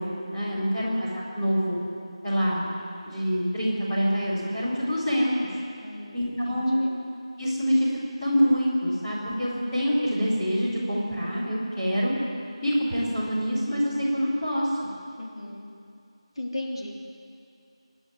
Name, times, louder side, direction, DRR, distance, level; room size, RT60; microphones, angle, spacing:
voice 1, 0.0-1.8 2.2-2.7 3.0-5.6 6.1-6.9 7.4-7.9 8.2-12.1 12.6-14.9, equal, 10° left, -11 dB, 4.2 m, -26 dB
voice 2, 5.8-6.9 15.2-15.7 16.4-17.0, left 1 dB, 60° left, -1 dB, 3.4 m, -37 dB
25.5 x 12.0 x 9.2 m, 2.4 s
figure-of-eight pair, 175°, 3 cm